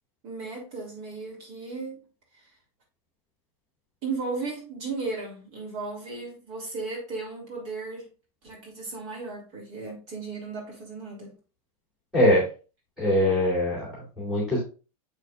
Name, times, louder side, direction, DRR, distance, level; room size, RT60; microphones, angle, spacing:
voice 1, 0.2-2.0 2.3-2.5 4.0-8.1 8.4-11.3, right 3 dB, 40° right, 3.0 m, -35 dB
voice 2, 12.1-12.5 13.0-14.6, left 1 dB, ahead, 2.8 m, -22 dB
7.3 x 6.6 x 2.5 m
supercardioid pair, 155°, 19 cm